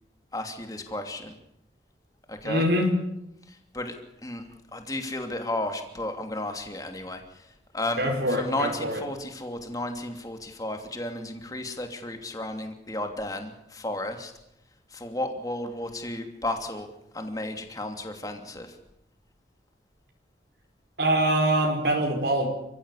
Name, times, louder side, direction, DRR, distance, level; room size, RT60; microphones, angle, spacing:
voice 1, 0.3-1.3 2.3-2.7 3.5-4.4 4.7-7.4 7.7-14.3 14.9-16.9 17.1-18.7, left 1 dB, 20° left, 5 dB, 2.9 m, -33 dB
voice 2, 2.4-2.9 8.0-9.0 21.0-22.5, right 1 dB, 70° right, 1 dB, 5.0 m, -24 dB
29.0 x 16.0 x 8.5 m, 0.82 s
head